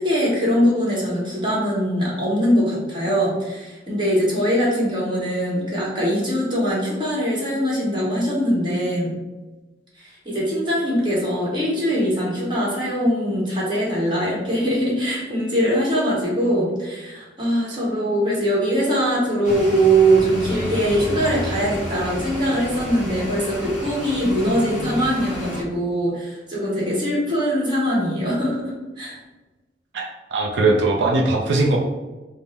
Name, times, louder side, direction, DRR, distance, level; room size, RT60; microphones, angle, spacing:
voice 1, 0.0-9.2 10.0-29.2, equal, 25° right, -5 dB, 1.2 m, -22 dB
sound 1, 19.4-25.6, equal, 5° right, 1.1 m, -31 dB
voice 2, 29.9-31.8, right 2 dB, 85° right, 0 dB, 0.5 m, -20 dB
3.5 x 2.0 x 4.1 m, 1.1 s
head